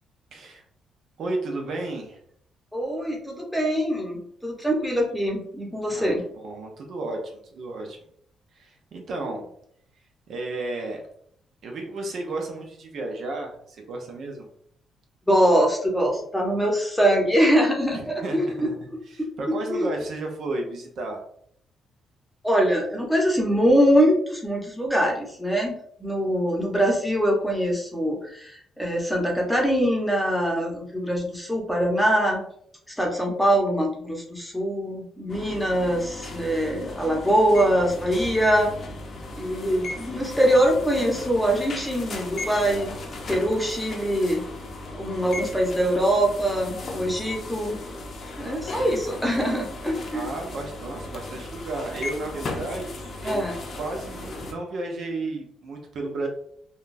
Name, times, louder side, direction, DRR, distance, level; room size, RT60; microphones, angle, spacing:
voice 1, 0.3-0.6 1.2-2.2 5.9-8.0 8.5-9.4 10.3-11.0 11.6-14.5 17.9-21.2 48.4-49.0 50.1-53.4 53.7-56.3, right 2 dB, 65° right, 2 dB, 0.6 m, -33 dB
voice 2, 2.7-6.2 15.3-18.7 19.7-19.9 22.4-25.7 26.0-32.4 32.9-38.7 39.4-42.9 43.3-44.4 45.0-47.8 48.4-50.3 53.2-53.5, equal, 5° left, 0 dB, 0.9 m, -23 dB
sound 1, 35.3-54.5, left 2 dB, 50° left, 0.6 m, -37 dB
3.6 x 2.3 x 2.6 m, 0.67 s
cardioid pair, 90°, 0 cm